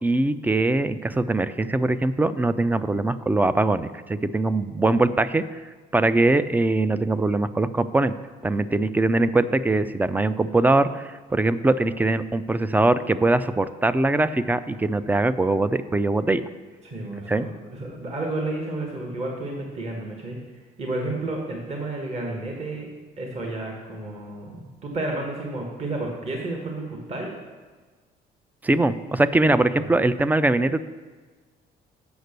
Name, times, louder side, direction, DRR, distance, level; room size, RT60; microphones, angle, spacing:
voice 1, 0.0-5.4 5.9-8.1 8.4-16.4 17.3-17.5 28.6-30.8, right 2 dB, 10° right, 14 dB, 0.3 m, -22 dB
voice 2, 16.8-20.4 20.8-22.9 23.2-27.3 29.7-29.9, right 2 dB, 40° right, 0 dB, 1.6 m, -31 dB
7.9 x 5.9 x 6.6 m, 1.4 s
cardioid pair, 110°, 17 cm